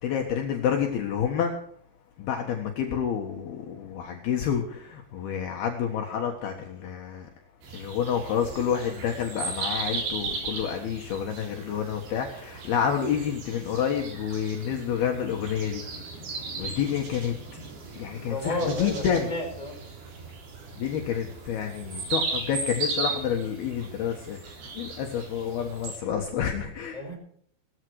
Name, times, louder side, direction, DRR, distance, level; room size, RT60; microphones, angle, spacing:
voice 1, 0.0-1.5 2.2-7.3 7.7-15.8 16.5-17.4 17.9-19.3 20.8-27.0, left 8 dB, 65° left, 2 dB, 3.2 m, -29 dB
sound 1, 7.6-26.0, right 4 dB, 65° right, 6.0 m, -36 dB
voice 2, 18.1-19.8 26.9-27.2, left 2 dB, 10° left, -1 dB, 6.5 m, -32 dB
18.0 x 14.5 x 4.8 m, 0.65 s
omnidirectional pair, 5.1 m